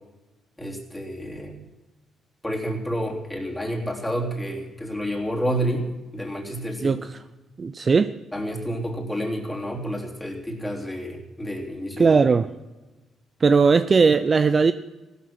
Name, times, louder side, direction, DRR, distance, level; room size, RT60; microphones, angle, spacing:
voice 1, 0.6-1.6 2.4-7.0 8.3-12.2, equal, 10° left, 3.5 m, -29 dB
voice 2, 7.6-8.1 12.0-12.5 13.4-14.7, right 5 dB, 35° right, 0.5 m, -18 dB
16.0 x 12.5 x 6.0 m
cardioid pair, 90°, 0 cm